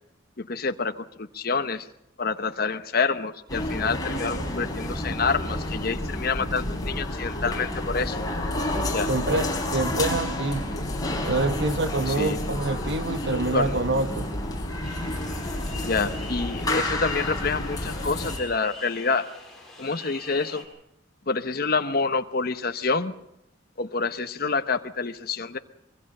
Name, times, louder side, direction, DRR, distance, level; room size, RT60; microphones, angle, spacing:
voice 1, 0.4-1.9 2.2-8.2 8.9-9.1 12.1-12.4 13.5-13.8 15.8-19.3 19.8-20.6 21.3-23.1 23.8-25.6, left 4 dB, 50° left, 7 dB, 0.9 m, -27 dB
sound 1, 3.5-18.4, left 1 dB, 20° left, 4.6 m, -30 dB
voice 2, 9.1-10.6 11.3-14.3, right 2 dB, 65° right, 9 dB, 1.4 m, -26 dB
sound 2, 14.8-20.6, left 2 dB, ahead, 5.8 m, -43 dB
25.0 x 22.5 x 5.5 m, 0.81 s
head